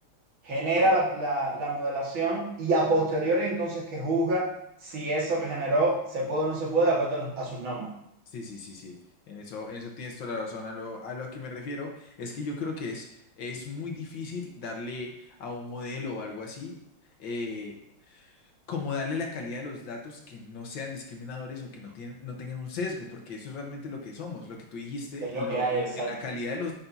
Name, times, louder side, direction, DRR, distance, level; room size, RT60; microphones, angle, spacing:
voice 1, 0.4-4.5 4.8-7.9 25.2-26.1, right 2 dB, 70° right, -5 dB, 2.7 m, -26 dB
voice 2, 8.3-8.9 9.3-13.1 13.4-16.8 17.2-17.7 18.1-18.4 18.7-26.7, left 3 dB, 65° left, 1 dB, 1.7 m, -36 dB
9.5 x 5.8 x 2.7 m, 0.78 s
omnidirectional pair, 2.3 m